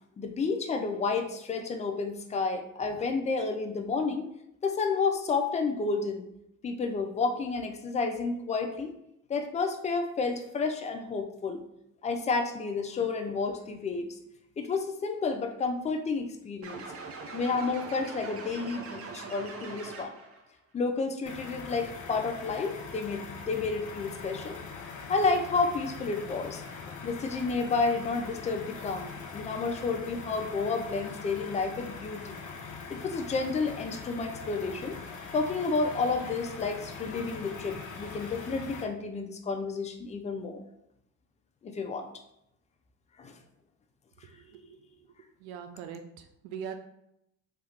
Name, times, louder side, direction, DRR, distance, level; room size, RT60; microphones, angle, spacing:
voice 1, 0.2-4.3 4.6-6.3 6.6-8.9 9.3-11.6 12.0-14.1 14.6-16.8 17.3-20.1 20.7-24.6 25.1-32.4 32.9-35.0 35.3-40.6 41.6-42.1 43.2-43.3, left 4 dB, 20° left, 5 dB, 0.4 m, -31 dB
sound 1, 16.6-20.4, right 3 dB, 35° right, 0.6 m, -42 dB
sound 2, 21.3-38.8, left 5 dB, 45° left, 0.7 m, -42 dB
voice 2, 44.3-44.8 45.4-46.7, right 7 dB, 75° right, 6 dB, 0.6 m, -42 dB
2.8 x 2.3 x 3.4 m, 0.79 s
hypercardioid pair, 65°, 40 cm